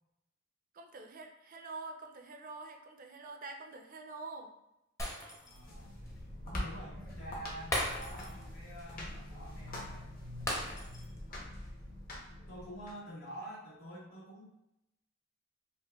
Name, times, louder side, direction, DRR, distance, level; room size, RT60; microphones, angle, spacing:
voice 1, 0.7-4.5, right 3 dB, 45° right, 4 dB, 0.4 m, -46 dB
Shatter, 5.0-5.7 6.1-6.2 7.7-8.5 8.8-8.9 10.5-11.2 11.5-11.7, left 1 dB, 15° left, 0.6 m, -37 dB
voice 2, 5.4-5.9 6.4-10.3 12.5-14.5, right 1 dB, 80° left, -7 dB, 1.4 m, -48 dB
sound 1, 5.5-12.9, left 1 dB, 45° left, 0.8 m, -44 dB
4.9 x 2.1 x 2.2 m, 0.86 s
head